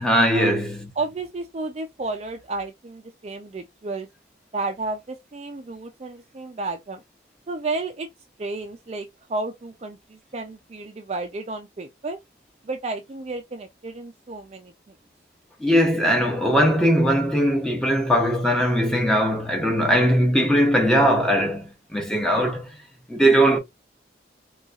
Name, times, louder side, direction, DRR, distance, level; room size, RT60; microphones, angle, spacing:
voice 1, 0.0-0.8 15.6-22.7 23.1-23.6, equal, 5° left, 0.7 m, -20 dB
voice 2, 1.0-4.1 4.5-7.0 7.5-8.1 8.4-12.2 12.6-15.0, right 3 dB, 35° right, 0.4 m, -32 dB
4.0 x 2.3 x 2.3 m
head